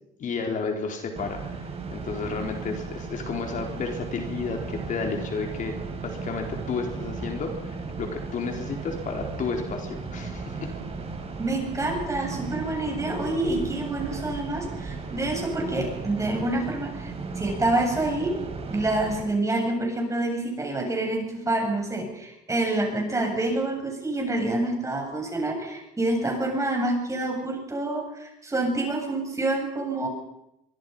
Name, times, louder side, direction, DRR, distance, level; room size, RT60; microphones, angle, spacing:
voice 1, 0.2-5.7 6.0-10.7, left 4 dB, 50° left, 3 dB, 4.0 m, -32 dB
sound 1, 1.2-19.2, right 4 dB, 35° right, 4.9 m, -36 dB
voice 2, 11.4-18.4 18.7-30.1, right 2 dB, 20° right, 2 dB, 7.5 m, -27 dB
23.5 x 23.0 x 5.6 m, 0.87 s
cardioid pair, 110°, 17 cm